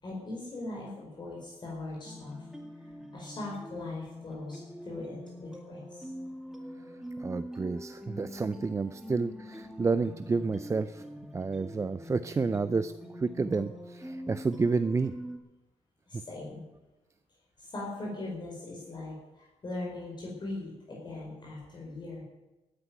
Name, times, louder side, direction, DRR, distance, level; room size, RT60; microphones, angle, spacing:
voice 1, 0.0-2.4 2.8-6.1 16.1-16.6 17.6-22.2, left 2 dB, 40° left, -4 dB, 4.9 m, -40 dB
sound 1, 2.0-15.4, equal, 5° right, 2.2 m, -44 dB
voice 2, 7.2-11.0 11.3-15.1, right 4 dB, 25° right, 12 dB, 0.5 m, -30 dB
14.0 x 9.8 x 9.3 m, 1.0 s
cardioid pair, 120°, 12 cm